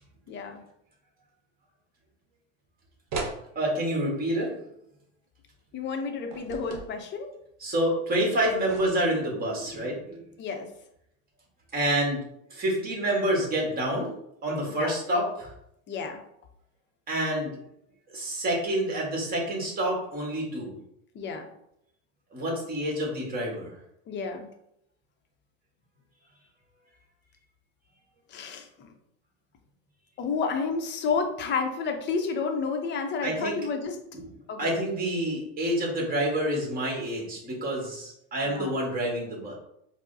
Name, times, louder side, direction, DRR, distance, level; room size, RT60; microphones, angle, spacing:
voice 1, 0.3-0.6 5.7-7.3 10.4-10.7 14.7-14.9 15.9-16.2 21.1-21.4 24.1-24.5 28.3-28.9 30.2-34.0 34.5-34.7 38.4-38.8, left 5 dB, 35° left, 5 dB, 0.6 m, -30 dB
sound 1, 3.1-3.4 6.3-6.9 8.4-9.2, right 3 dB, 55° right, 0.8 m, -36 dB
voice 2, 3.5-4.6 7.6-10.2 11.7-12.2 12.5-14.1 14.4-15.5 17.1-17.6 18.1-20.7 22.3-23.7 33.2-33.6 34.1-34.2 34.6-39.5, right 1 dB, 25° right, -1 dB, 1.3 m, -28 dB
4.4 x 2.0 x 2.7 m, 0.76 s
supercardioid pair, 120°, 33 cm